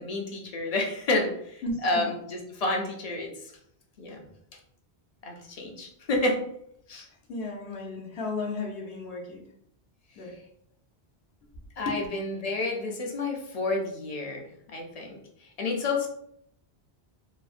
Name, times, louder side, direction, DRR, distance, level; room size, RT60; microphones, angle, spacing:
voice 1, 0.0-3.5 4.0-4.2 5.2-6.4 6.9-7.1 11.8-14.5 14.7-16.1, left 2 dB, 50° left, 1 dB, 0.5 m, -30 dB
voice 2, 1.6-2.1 7.3-9.4 10.2-10.3 11.9-12.0, left 3 dB, 70° left, -1 dB, 0.9 m, -34 dB
3.2 x 2.1 x 2.4 m, 0.71 s
omnidirectional pair, 1.1 m